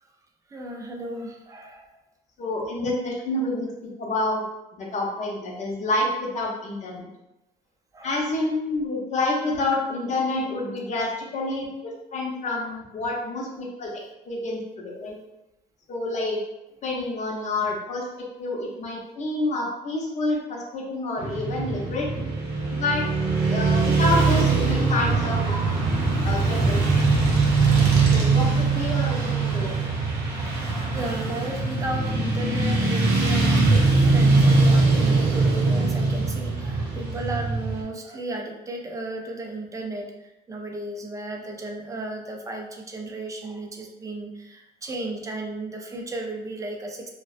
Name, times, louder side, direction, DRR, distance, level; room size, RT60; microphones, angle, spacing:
voice 1, 0.5-1.9 7.9-8.2 25.1-25.6 26.4-26.5 30.4-40.1 40.5-47.1, right 2 dB, 20° right, 2 dB, 0.4 m, -34 dB
voice 2, 2.4-4.4 4.7-7.1 8.0-13.9 14.3-15.1 15.9-16.4 16.8-22.3 22.7-23.0 23.4-25.9 26.2-26.8 28.1-29.8, left 2 dB, 45° left, -2 dB, 0.7 m, -28 dB
Motorcycle / Traffic noise roadway noise, 21.2-37.8, right 3 dB, 70° right, 0.7 m, -21 dB
2.5 x 2.1 x 2.4 m, 0.94 s
cardioid pair, 110°, 17 cm